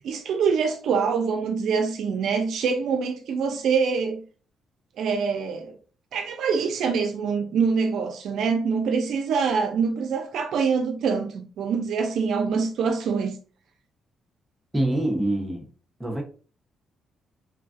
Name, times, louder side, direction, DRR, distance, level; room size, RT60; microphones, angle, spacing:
voice 1, 0.0-4.2 5.0-5.7 6.1-13.3, right 5 dB, 75° right, 0.4 m, -25 dB
voice 2, 14.7-15.7 16.0-16.2, right 1 dB, 10° right, 0.8 m, -25 dB
3.3 x 2.4 x 2.4 m
cardioid pair, 90°, 0 cm